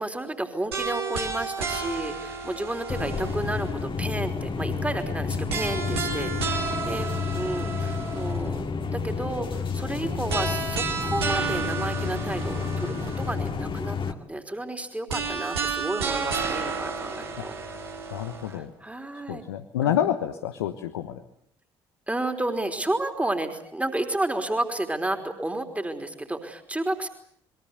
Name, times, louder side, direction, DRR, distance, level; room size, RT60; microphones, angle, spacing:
voice 1, 0.0-8.7 8.9-17.6 18.5-19.4 19.8-20.0 22.1-27.1, right 1 dB, 10° right, 5 dB, 3.6 m, -31 dB
sound 1, 0.7-3.8 5.5-8.5 10.3-13.5 15.1-18.5, right 5 dB, 80° right, 4.5 m, -31 dB
sound 2, 2.9-14.1, left 5 dB, 40° left, 2.2 m, -30 dB
voice 2, 17.4-18.7 19.1-21.2, left 10 dB, 75° left, 8 dB, 1.2 m, -29 dB
28.0 x 22.0 x 8.1 m, 0.66 s
figure-of-eight pair, 45°, 13 cm